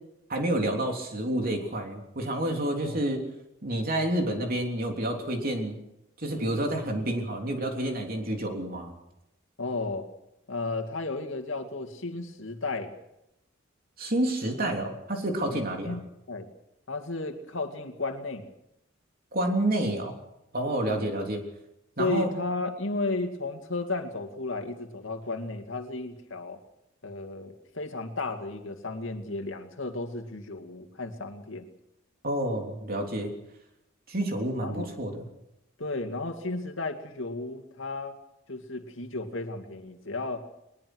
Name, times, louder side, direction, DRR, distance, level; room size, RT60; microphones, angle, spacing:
voice 1, 0.3-3.2 3.6-5.8 6.2-8.9 14.0-16.0 19.3-20.2 20.5-21.4 22.0-22.3 32.2-33.3 34.1-35.2, right 1 dB, 45° right, 2 dB, 3.4 m, -29 dB
voice 2, 9.6-10.1 10.5-12.9 15.5-16.0 16.3-16.5 16.9-18.5 20.8-21.1 22.0-26.6 27.0-31.7 34.6-34.9 35.8-38.2 38.5-40.4, left 3 dB, 75° left, 5 dB, 2.3 m, -33 dB
21.0 x 21.0 x 6.3 m, 0.87 s
head